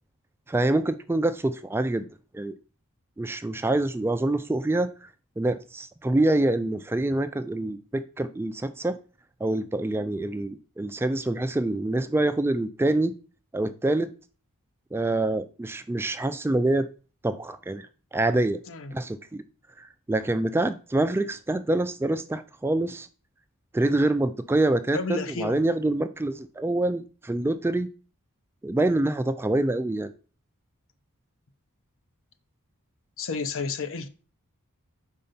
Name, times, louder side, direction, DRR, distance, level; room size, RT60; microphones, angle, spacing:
voice 1, 0.5-2.1 2.3-2.5 3.2-5.1 5.4-9.0 9.4-13.1 13.5-14.1 14.9-16.9 17.2-17.9 18.1-18.6 18.9-19.4 19.8-23.1 23.7-27.9 28.6-30.1, right 2 dB, 10° right, 0.3 m, -26 dB
voice 2, 24.9-25.6 33.2-34.1, left 4 dB, 60° left, 0.7 m, -31 dB
5.3 x 4.3 x 5.6 m
head